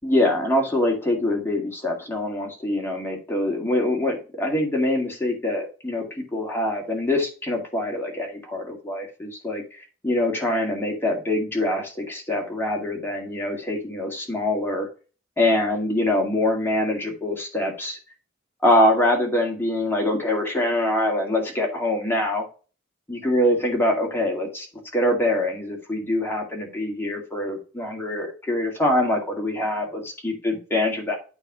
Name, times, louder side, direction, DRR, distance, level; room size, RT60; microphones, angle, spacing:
voice 1, 0.0-6.0 6.3-9.6 10.0-14.9 15.4-18.0 18.6-22.5 23.1-24.7 24.9-31.2, left 1 dB, 10° left, 0 dB, 2.0 m, -24 dB
9.0 x 3.5 x 4.8 m, 0.34 s
head